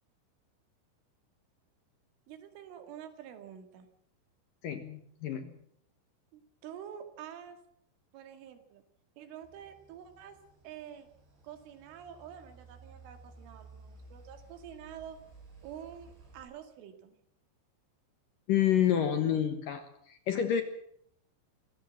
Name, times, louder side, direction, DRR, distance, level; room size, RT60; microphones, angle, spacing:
voice 1, 2.3-3.9 6.3-7.6 8.1-8.8 9.2-10.4 10.6-11.1 11.4-15.2 15.6-17.2, right 9 dB, 85° right, 8 dB, 4.6 m, -47 dB
voice 2, 4.6-5.5 18.5-20.6, left 9 dB, 65° left, 8 dB, 2.3 m, -29 dB
sound 1, 9.4-16.4, right 3 dB, 65° right, 10.0 m, -55 dB
25.5 x 15.5 x 7.7 m, 0.68 s
omnidirectional pair, 5.5 m